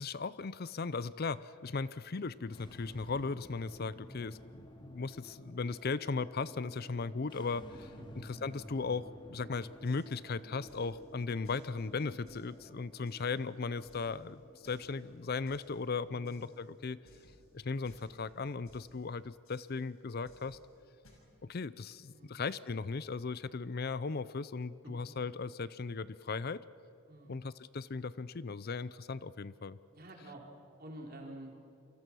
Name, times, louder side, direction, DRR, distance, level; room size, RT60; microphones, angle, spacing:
voice 1, 0.0-17.0 17.5-20.6 21.4-26.6 27.3-29.8, left 4 dB, 50° left, 17 dB, 0.5 m, -37 dB
sound 1, 2.4-17.7, equal, 20° left, 2.2 m, -54 dB
sound 2, 9.6-21.1, left 1 dB, 85° left, 6.7 m, -63 dB
voice 2, 22.1-22.4 27.1-27.4 29.9-30.5 30.8-31.5, right 1 dB, 45° right, 0 dB, 4.4 m, -49 dB
28.5 x 24.0 x 6.2 m, 2.6 s
head